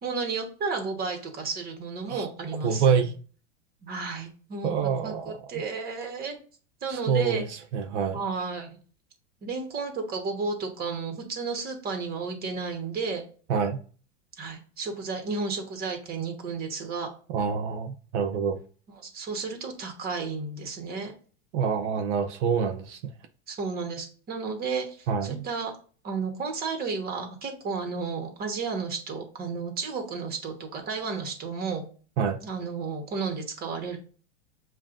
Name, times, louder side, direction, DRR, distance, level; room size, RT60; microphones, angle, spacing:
voice 1, 0.0-3.1 3.8-4.7 5.0-6.4 6.8-7.4 8.1-8.8 9.4-13.2 14.4-17.1 19.0-21.1 23.5-25.7 26.0-31.8 32.4-34.0, right 4 dB, 25° right, 1.2 m, -32 dB
voice 2, 2.6-3.1 4.6-5.4 6.9-8.2 13.5-13.8 17.3-18.6 21.5-23.1 25.1-25.5 32.2-32.4, right 6 dB, 70° right, 0.7 m, -26 dB
7.4 x 2.5 x 2.5 m
supercardioid pair, 135°, 37 cm